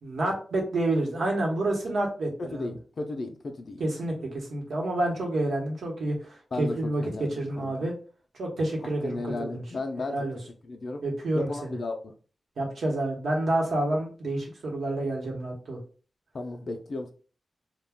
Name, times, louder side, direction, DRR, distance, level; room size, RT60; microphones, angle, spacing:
voice 1, 0.0-2.7 3.8-7.0 7.3-7.9 8.4-9.5 10.1-10.4 11.0-11.7 12.6-15.8, right 1 dB, 80° right, 0.9 m, -29 dB
voice 2, 2.4-3.8 6.5-7.9 8.8-10.2 10.6-11.0 11.3-12.1 16.3-17.1, left 2 dB, 50° left, 0.4 m, -35 dB
2.3 x 2.1 x 3.4 m
wide cardioid pair, 160°, 0 cm